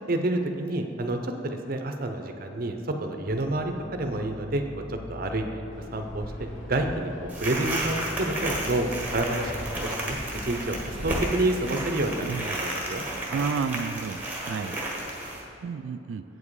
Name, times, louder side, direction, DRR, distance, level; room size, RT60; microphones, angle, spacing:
voice 1, 0.1-5.6 5.9-9.6 9.8-13.0, right 2 dB, 50° right, 5 dB, 0.7 m, -29 dB
sound 1, 3.3-13.7, left 1 dB, 10° left, 0.3 m, -43 dB
Fixed-wing aircraft airplane, 5.7-11.2, equal, 75° left, 1.3 m, -41 dB
sound 2, 7.3-15.4, right 1 dB, 10° right, 1.3 m, -33 dB
voice 2, 12.2-12.6 13.3-14.8 15.6-16.2, right 5 dB, 85° right, 10 dB, 0.3 m, -31 dB
7.9 x 7.3 x 4.8 m, 2.8 s
head